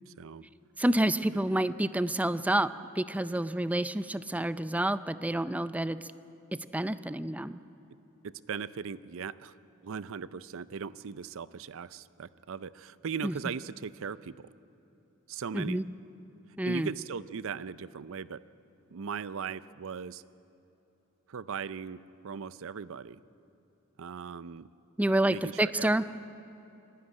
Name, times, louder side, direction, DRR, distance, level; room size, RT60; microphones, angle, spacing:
voice 1, 0.1-0.5 8.2-9.6 9.8-14.5 15.3-15.8 16.7-18.4 18.9-20.2 21.3-23.2 24.0-24.7 25.2-25.9, right 6 dB, 65° right, 17 dB, 0.5 m, -39 dB
voice 2, 0.8-6.0 6.7-7.6 13.2-13.4 15.5-15.9 16.6-16.9 25.0-26.0, right 1 dB, 5° right, 14 dB, 0.4 m, -28 dB
25.5 x 12.0 x 9.7 m, 2.9 s
head